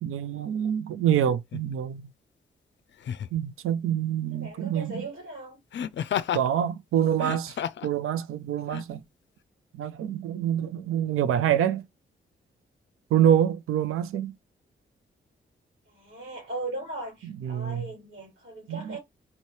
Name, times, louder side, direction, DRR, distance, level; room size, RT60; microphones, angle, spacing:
voice 1, 0.0-2.1 3.3-5.0 6.3-7.6 7.8-9.0 9.7-11.8 13.1-14.3 17.2-17.9 18.7-19.0, right 10 dB, 85° right, 0.5 m, -26 dB
Laughter, 1.5-1.7 3.0-3.4 5.7-6.5 7.1-7.9 8.7-8.8, left 9 dB, 60° left, 0.5 m, -31 dB
voice 2, 4.3-5.6 15.9-19.0, right 2 dB, 70° right, 3.1 m, -38 dB
4.1 x 2.8 x 3.1 m
cardioid pair, 50°, 21 cm